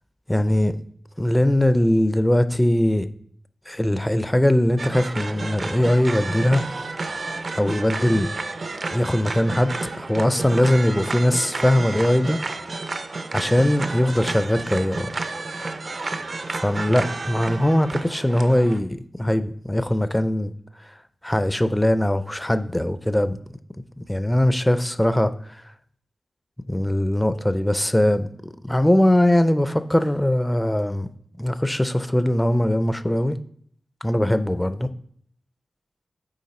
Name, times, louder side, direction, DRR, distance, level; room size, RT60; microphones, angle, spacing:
voice 1, 0.3-0.8 1.2-3.1 3.7-6.6 7.6-8.3 8.9-12.4 13.3-15.1 16.6-20.5 21.2-23.4 24.1-25.6 26.7-31.1 31.4-33.4 34.0-34.9, left 1 dB, 10° left, 0.4 m, -21 dB
sound 1, 4.8-18.8, right 3 dB, 50° right, 0.5 m, -31 dB
8.7 x 3.2 x 4.2 m
wide cardioid pair, 100°, 0 cm